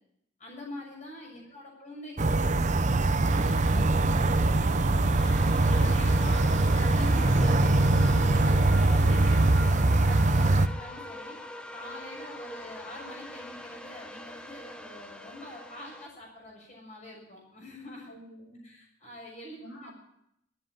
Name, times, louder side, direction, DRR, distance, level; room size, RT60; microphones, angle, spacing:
voice 1, 0.4-5.1 5.7-8.5 8.9-11.4 11.7-18.2 18.6-19.9, left 1 dB, 35° left, -2 dB, 6.7 m, -45 dB
sound 1, 2.2-10.7, right 2 dB, 35° right, 0.6 m, -23 dB
sound 2, 3.2-9.5, right 1 dB, 90° right, 2.1 m, -36 dB
sound 3, 5.2-16.1, left 1 dB, 5° left, 0.8 m, -43 dB
voice 2, 18.1-18.7 19.6-20.0, equal, 60° left, -7 dB, 5.0 m, -48 dB
12.0 x 10.5 x 9.0 m, 0.74 s
head